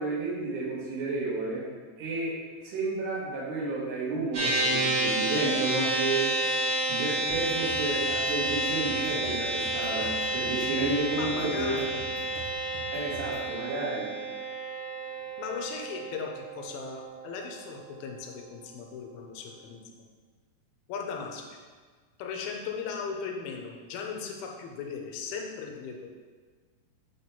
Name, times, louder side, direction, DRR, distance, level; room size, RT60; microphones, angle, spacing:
voice 1, 0.0-1.6 2.0-2.3 2.6-6.3 6.9-11.8 12.9-14.1, right 3 dB, 85° right, -6 dB, 3.7 m, -31 dB
sound 1, 4.3-17.9, right 1 dB, 50° right, 2.1 m, -30 dB
sound 2, 7.3-13.5, right 3 dB, 65° right, 2.3 m, -45 dB
voice 2, 11.1-12.0 15.4-20.0 20.9-21.6 22.2-26.1, left 5 dB, 80° left, 2 dB, 2.3 m, -37 dB
8.3 x 3.4 x 4.3 m, 1.5 s
omnidirectional pair, 4.8 m